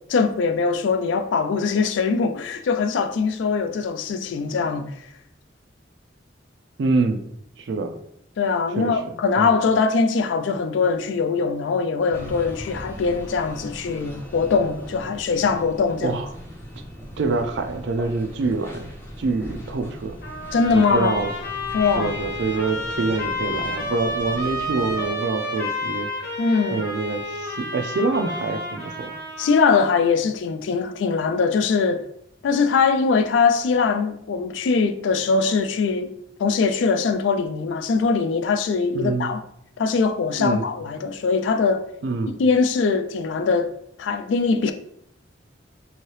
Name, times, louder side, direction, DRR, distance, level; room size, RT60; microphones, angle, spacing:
voice 1, 0.1-4.9 8.4-16.2 20.5-21.2 21.7-22.1 26.4-26.8 29.4-32.0 32.4-36.1 36.4-39.4 39.8-41.8 42.4-43.7 44.0-44.7, left 5 dB, 75° left, 0.3 m, -22 dB
voice 2, 6.8-7.3 7.6-8.0 8.8-9.0 9.4-9.5 16.0-16.3 17.2-18.9 19.2-20.2 20.7-21.3 21.8-26.1 26.7-29.2 38.9-39.3 40.4-40.7 42.0-42.4, right 3 dB, 65° right, 0.4 m, -25 dB
sound 1, 12.1-25.1, equal, 15° left, 0.5 m, -40 dB
Trumpet, 20.2-29.9, left 1 dB, 55° left, 1.0 m, -30 dB
2.8 x 2.7 x 3.1 m
head